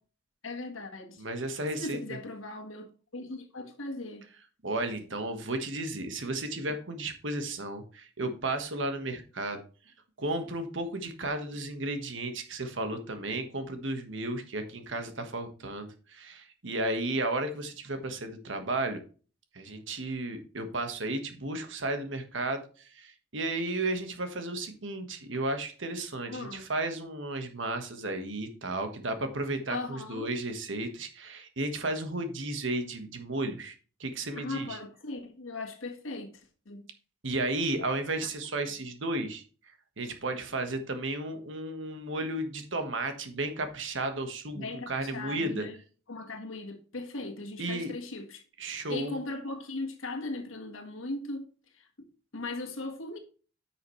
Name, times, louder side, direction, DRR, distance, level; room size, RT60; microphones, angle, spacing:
voice 1, 0.4-1.2 1.8-2.9 3.1-4.2 26.3-26.7 29.7-30.3 34.3-36.8 38.2-38.3 44.5-45.8 46.1-48.4 48.9-51.4 51.7-51.9 52.3-53.2, left 2 dB, 85° left, 1.6 m, -38 dB
voice 2, 1.2-2.0 4.6-9.6 10.2-19.0 19.5-22.6 23.0-33.7 34.0-34.8 37.2-39.4 40.0-45.7 47.6-47.9 48.6-49.2, right 2 dB, 75° right, 1.5 m, -33 dB
9.7 x 6.3 x 3.2 m
head